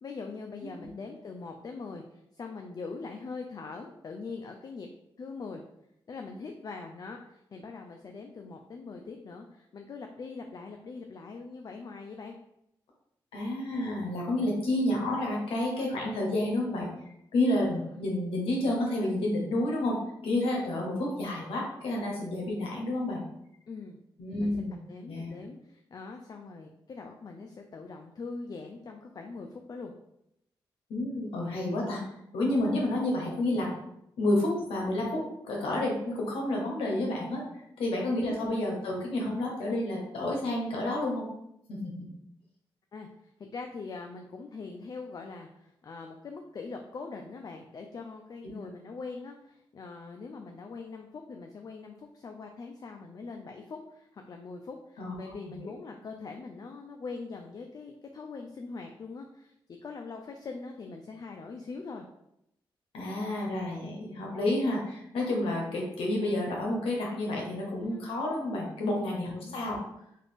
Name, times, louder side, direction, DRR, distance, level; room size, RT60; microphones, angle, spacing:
voice 1, 0.0-4.9 5.2-5.6 6.1-12.4 17.7-18.0 23.7-24.0 24.4-24.5 24.9-29.9 38.2-38.5 42.9-43.1 43.5-59.5 59.8-62.1 67.8-68.0 69.3-69.8, left 4 dB, 45° left, 3 dB, 0.3 m, -42 dB
voice 2, 13.3-16.9 17.3-20.0 20.2-23.2 24.2-24.8 25.1-25.3 30.9-32.0 32.3-33.7 34.2-37.4 37.8-41.3 41.7-42.1 48.4-48.5 55.0-55.7 62.9-69.8, left 1 dB, 85° left, -2 dB, 0.7 m, -30 dB
2.5 x 2.4 x 3.5 m, 0.80 s
cardioid pair, 55°, 9 cm